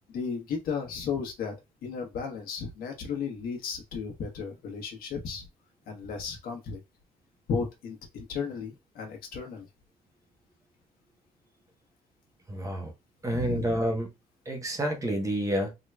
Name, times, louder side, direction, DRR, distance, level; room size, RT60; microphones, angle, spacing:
voice 1, 0.1-1.5 1.8-5.5 5.9-6.8 7.5-9.7 13.3-13.8, left 5 dB, 75° left, 1.2 m, -34 dB
voice 2, 12.5-12.9 13.2-14.1 14.5-15.7, right 1 dB, 20° right, 0.9 m, -29 dB
3.6 x 3.0 x 2.3 m
cardioid pair, 115°, 15 cm